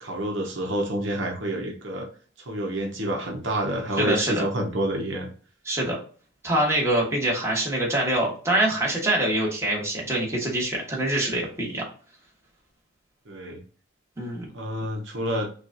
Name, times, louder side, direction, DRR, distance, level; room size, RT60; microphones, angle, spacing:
voice 1, 0.0-2.1 2.4-5.3 13.3-13.6 14.5-15.5, right 1 dB, 65° right, 1 dB, 1.0 m, -28 dB
voice 2, 4.0-4.4 5.6-6.0 6.4-11.8 14.2-14.5, right 1 dB, 15° right, -3 dB, 1.4 m, -24 dB
5.9 x 2.5 x 2.7 m, 0.41 s
head